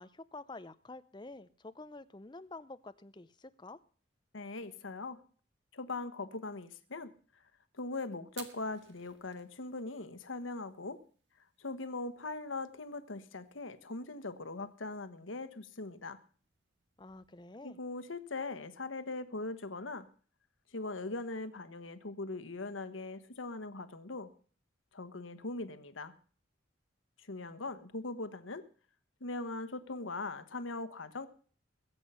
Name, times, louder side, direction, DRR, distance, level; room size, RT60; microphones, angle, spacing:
voice 1, 0.0-3.8 17.0-17.8, left 2 dB, 25° left, 13 dB, 0.6 m, -49 dB
voice 2, 4.3-5.2 5.7-7.1 7.7-11.0 11.6-16.2 17.6-20.1 20.7-24.3 24.9-26.1 27.2-28.7 29.2-31.3, left 3 dB, 90° left, 12 dB, 1.3 m, -40 dB
Fire, 8.2-17.4, right 7 dB, 60° right, 1.8 m, -59 dB
21.0 x 8.1 x 5.6 m, 0.43 s
head